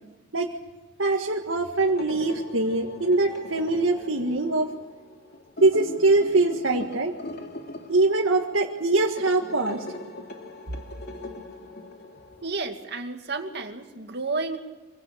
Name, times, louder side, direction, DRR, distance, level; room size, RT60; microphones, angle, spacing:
voice 1, 1.0-4.7 5.6-7.1 7.9-9.8, right 2 dB, 90° right, 0 dB, 1.7 m, -23 dB
sound 1, 1.8-12.5, left 1 dB, 55° left, 2.9 m, -40 dB
voice 2, 12.4-14.6, right 3 dB, 60° right, 4 dB, 2.4 m, -31 dB
24.5 x 17.0 x 8.5 m, 1.2 s
head